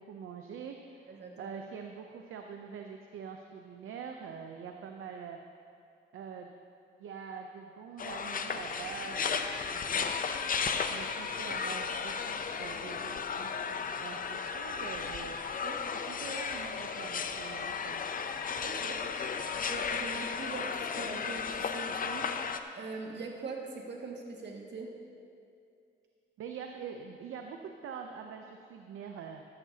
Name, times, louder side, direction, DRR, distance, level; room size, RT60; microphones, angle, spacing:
voice 1, 0.0-5.4 6.1-6.5 7.0-10.1 10.9-15.4 16.1-18.0 26.4-29.4, right 6 dB, 80° right, 4 dB, 0.7 m, -44 dB
voice 2, 1.1-1.5 15.6-15.8 18.6-19.0 19.6-22.5 22.8-24.9, right 3 dB, 60° right, -1 dB, 1.9 m, -42 dB
sound 1, 8.0-22.6, left 6 dB, 45° left, 0.6 m, -34 dB
13.5 x 12.5 x 2.8 m, 2.4 s
cardioid pair, 80°, 21 cm